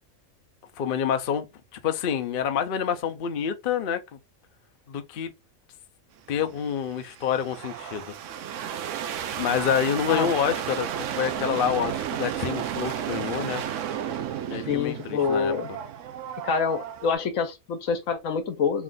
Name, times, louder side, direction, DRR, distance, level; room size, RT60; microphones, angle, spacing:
voice 1, 0.8-1.5 1.8-4.2 4.9-5.3 6.3-8.1 9.4-13.6 14.5-15.5, left 8 dB, 55° left, 0.6 m, -27 dB
sound 1, 6.3-17.1, right 9 dB, 70° right, 0.9 m, -33 dB
voice 2, 14.5-15.7 16.4-18.8, left 5 dB, 75° left, 1.1 m, -26 dB
3.4 x 2.4 x 3.8 m
omnidirectional pair, 1.4 m